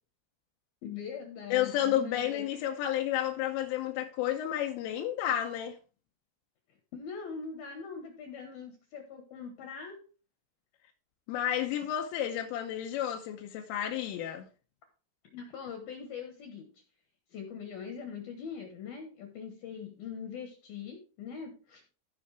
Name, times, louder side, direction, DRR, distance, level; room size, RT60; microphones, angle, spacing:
voice 1, 0.8-2.5 6.9-10.0 15.3-16.8 17.3-21.8, left 6 dB, 70° left, 2.4 m, -42 dB
voice 2, 1.5-5.8 11.3-14.5, left 11 dB, 85° left, 3.4 m, -31 dB
15.5 x 5.3 x 3.3 m
omnidirectional pair, 5.6 m